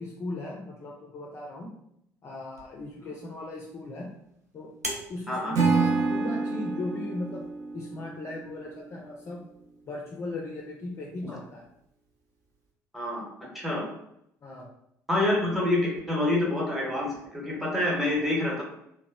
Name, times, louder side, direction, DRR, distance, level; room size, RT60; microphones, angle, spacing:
voice 1, 0.0-1.7 2.2-4.1 4.5-4.7 5.1-7.5 7.7-9.4 9.9-11.6 14.4-14.7, left 2 dB, 30° left, -2 dB, 0.4 m, -37 dB
sound 1, 2.5-7.5, right 1 dB, 90° right, 0.4 m, -44 dB
Acoustic guitar / Strum, 5.5-8.7, right 4 dB, 45° right, 0.7 m, -28 dB
voice 2, 12.9-13.2 13.5-13.8 15.1-18.6, left 1 dB, ahead, -3 dB, 0.9 m, -27 dB
2.8 x 2.0 x 2.3 m, 0.76 s
figure-of-eight pair, 55°, 9 cm